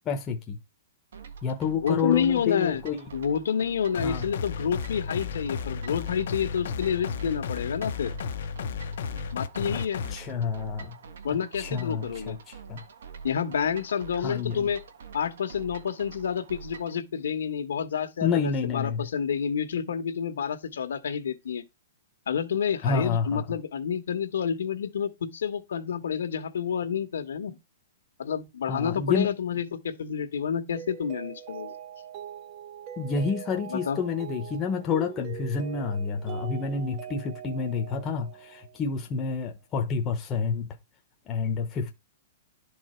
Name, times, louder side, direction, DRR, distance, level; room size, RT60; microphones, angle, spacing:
voice 1, 0.1-0.6 1.4-3.0 4.0-4.2 9.7-9.8 10.1-10.9 11.3-12.8 14.2-14.7 18.2-19.0 22.8-23.4 28.7-29.3 33.0-40.7 41.3-41.9, left 5 dB, 15° left, 0.9 m, -29 dB
sound 1, 1.1-17.0, right 5 dB, 70° right, 1.4 m, -45 dB
voice 2, 1.8-2.8 3.1-8.1 9.3-10.0 11.2-12.4 13.2-14.8 15.1-21.6 22.3-27.6 28.2-31.7 33.7-34.0, left 7 dB, 80° left, 1.5 m, -29 dB
sound 2, 3.9-10.1, left 6 dB, 55° left, 0.8 m, -33 dB
Mallet percussion, 30.8-38.9, right 9 dB, 25° right, 0.7 m, -42 dB
11.5 x 4.7 x 4.5 m
hypercardioid pair, 175°, 0 cm